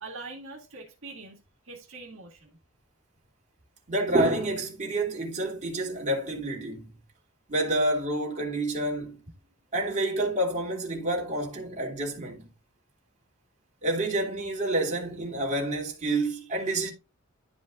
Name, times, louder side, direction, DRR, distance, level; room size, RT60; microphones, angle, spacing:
voice 1, 0.0-2.6, right 3 dB, 65° right, 2.0 m, -43 dB
voice 2, 3.9-6.9 7.5-9.2 9.7-12.5 13.8-16.9, right 1 dB, 35° right, 2.7 m, -28 dB
11.5 x 5.3 x 2.4 m
head